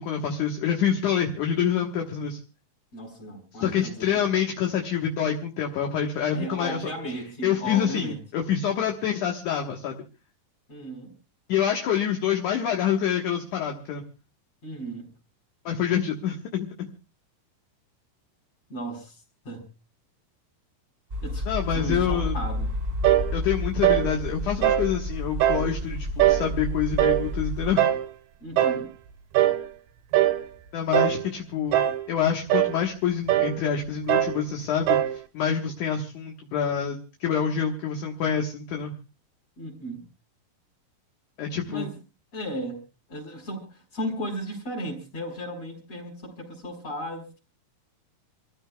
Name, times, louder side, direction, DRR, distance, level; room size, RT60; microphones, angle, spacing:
voice 1, 0.0-2.4 3.6-6.9 7.4-10.0 11.5-14.0 15.7-16.9 21.5-22.4 23.3-27.8 30.7-35.0 35.3-38.9 41.4-41.9, left 8 dB, 60° left, 2 dB, 2.4 m, -27 dB
voice 2, 2.9-4.3 6.3-8.2 10.7-11.1 14.6-15.1 18.7-19.7 21.2-22.7 28.4-28.9 39.6-40.0 41.7-41.9 42.3-42.8 43.1-47.4, right 1 dB, 40° left, 0 dB, 5.4 m, -35 dB
sound 1, 21.1-27.8, left 1 dB, 20° right, 2.2 m, -31 dB
sound 2, 23.0-23.3 23.8-24.1 24.6-24.9 25.4-25.7 26.2-26.5 27.0-27.3 27.8-28.1 28.6-28.9 29.3-29.7 30.1-30.4 30.9-31.3 31.7-32.1 32.5-32.8 33.3-33.6 34.1-34.4 34.9-35.2, right 13 dB, 75° right, 2.8 m, -21 dB
28.0 x 15.0 x 2.3 m, 0.32 s
omnidirectional pair, 4.7 m